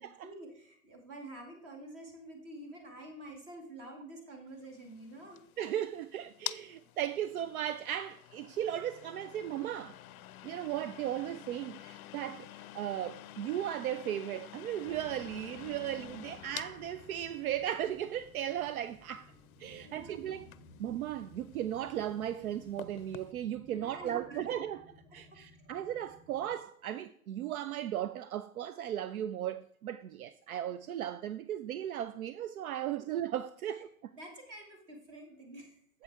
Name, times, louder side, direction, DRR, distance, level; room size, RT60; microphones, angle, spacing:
voice 1, 0.0-5.4 15.8-15.9 16.3-16.4 19.8-20.2 23.7-24.4 25.2-25.7 33.0-33.1 33.6-33.8 34.1-36.0, right 1 dB, 30° right, 2.2 m, -49 dB
sound 1, 4.6-23.3, left 14 dB, 70° left, 0.5 m, -50 dB
voice 2, 5.6-10.0 10.4-19.3 19.6-20.5 20.8-24.9 25.1-34.1, right 11 dB, 75° right, 0.5 m, -36 dB
sound 2, 14.8-26.6, left 2 dB, 5° left, 0.4 m, -57 dB
8.0 x 7.0 x 3.5 m
hypercardioid pair, 135°, 44 cm